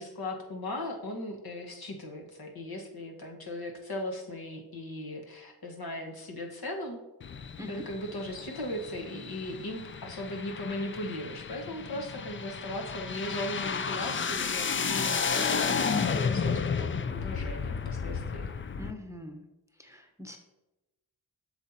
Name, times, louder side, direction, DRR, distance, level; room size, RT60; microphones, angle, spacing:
voice 1, 0.0-7.0 7.7-18.5, left 1 dB, 55° left, 1 dB, 1.4 m, -38 dB
sound 1, 7.2-18.9, left 5 dB, 30° left, 0.4 m, -32 dB
voice 2, 18.8-19.4 19.8-20.4, left 1 dB, 5° right, 3 dB, 0.9 m, -42 dB
7.9 x 6.3 x 2.8 m, 0.99 s
cardioid pair, 55°, 43 cm